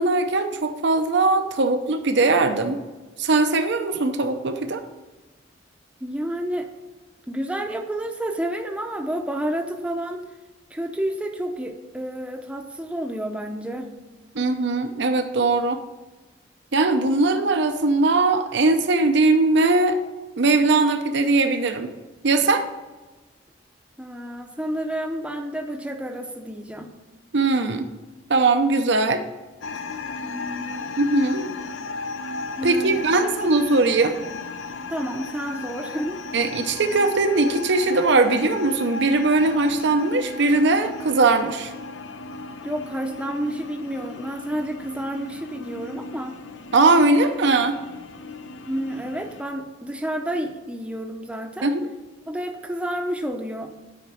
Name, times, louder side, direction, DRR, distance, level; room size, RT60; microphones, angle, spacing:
voice 1, 0.0-2.8 3.2-4.8 14.3-15.8 16.7-20.0 20.4-21.9 22.2-22.6 27.3-27.9 28.3-29.2 31.0-31.5 32.6-34.2 36.3-41.7 46.7-47.8 51.6-51.8, right 3 dB, 70° right, 7 dB, 0.7 m, -20 dB
voice 2, 6.0-6.7 7.3-10.2 10.7-13.9 24.0-26.9 30.2-30.9 32.6-33.5 34.9-36.2 42.6-46.4 48.7-51.7 52.3-53.7, right 1 dB, 5° right, 3 dB, 0.7 m, -30 dB
sound 1, 29.6-49.4, left 3 dB, 75° left, 0.7 m, -36 dB
9.3 x 5.2 x 5.7 m, 1.2 s
head